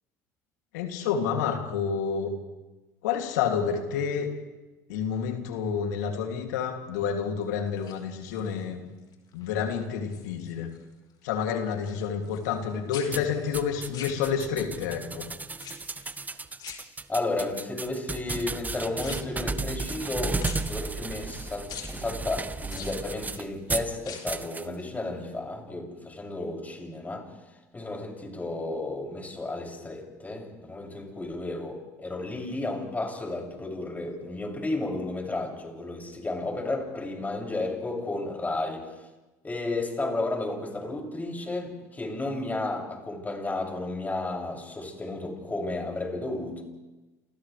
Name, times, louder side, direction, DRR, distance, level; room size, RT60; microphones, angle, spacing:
voice 1, 0.7-2.4 3.0-4.3 4.9-8.8 9.3-10.7 11.2-15.3, left 7 dB, 80° left, 3 dB, 2.8 m, -29 dB
sound 1, 7.7-8.6 9.1-9.5 9.8-10.8 11.1-12.6 12.9-14.7 15.5-16.2 16.6-17.4 18.2-20.1 20.4-21.4 21.7-22.0 22.7-23.5 23.9-24.4 24.8-24.9, left 7 dB, 50° left, 4.4 m, -45 dB
sound 2, 13.1-23.9 24.3-24.7, right 3 dB, 20° right, 1.1 m, -34 dB
voice 2, 17.1-27.3 27.7-38.9 39.4-46.6, left 2 dB, 20° left, 0 dB, 7.1 m, -33 dB
29.5 x 29.0 x 3.4 m, 1.1 s
hypercardioid pair, 75°, 9 cm